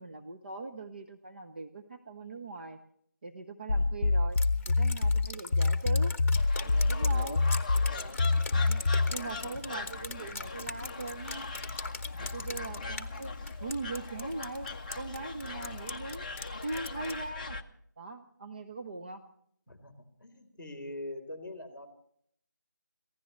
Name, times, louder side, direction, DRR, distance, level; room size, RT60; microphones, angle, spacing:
voice 1, 0.0-2.8 3.2-4.4 4.7-6.1 6.9-7.4 8.5-11.5 12.2-13.3 13.6-14.7 14.9-16.3 16.6-17.6 18.0-19.2, right 3 dB, 30° right, 4 dB, 0.8 m, -40 dB
sound 1, 3.7-9.2, left 3 dB, 75° left, 0.6 m, -26 dB
Drip, 4.4-17.3, left 3 dB, 45° left, 1.2 m, -43 dB
sound 2, 6.3-17.6, left 3 dB, 25° left, 0.7 m, -40 dB
voice 2, 6.6-7.4 7.7-8.2 8.9-9.4 12.1-12.5 19.7-21.9, left 1 dB, ahead, -14 dB, 2.9 m, -45 dB
27.5 x 16.0 x 3.2 m, 0.66 s
figure-of-eight pair, 170°, 10 cm